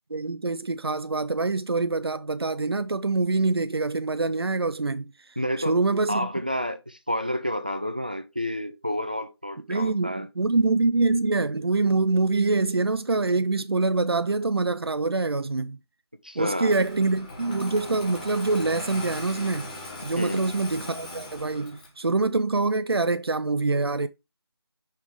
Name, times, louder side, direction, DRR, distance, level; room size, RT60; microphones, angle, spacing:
voice 1, 0.1-5.1 5.7-6.3 9.7-15.8 16.4-19.7 20.0-24.1, right 3 dB, 70° right, 0.6 m, -25 dB
voice 2, 5.4-5.8 6.1-10.3 16.2-16.7 20.2-20.5, equal, 20° right, 0.3 m, -29 dB
Engine starting, 16.6-22.0, left 2 dB, 20° left, 1.3 m, -39 dB
5.7 x 3.6 x 4.8 m
figure-of-eight pair, 165°, 14 cm